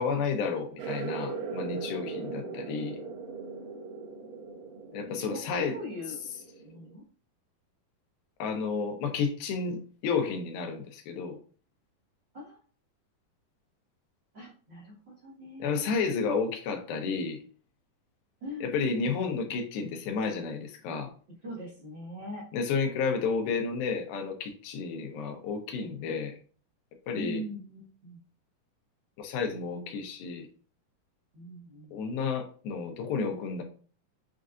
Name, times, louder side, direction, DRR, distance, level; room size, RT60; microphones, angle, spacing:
voice 1, 0.0-3.0 4.9-5.8 8.4-11.4 15.6-17.4 18.6-21.1 22.5-26.3 27.1-27.4 29.2-30.5 31.9-33.6, left 5 dB, 85° left, 5 dB, 2.5 m, -31 dB
sound 1, 0.8-6.9, right 4 dB, 70° right, 2.2 m, -39 dB
voice 2, 2.2-2.6 5.1-6.2 6.6-7.0 12.3-12.6 14.3-15.9 18.4-19.4 21.4-22.5 27.1-28.2 31.3-32.0, equal, 55° right, -8 dB, 1.3 m, -41 dB
6.4 x 2.5 x 2.4 m, 0.40 s
omnidirectional pair, 4.2 m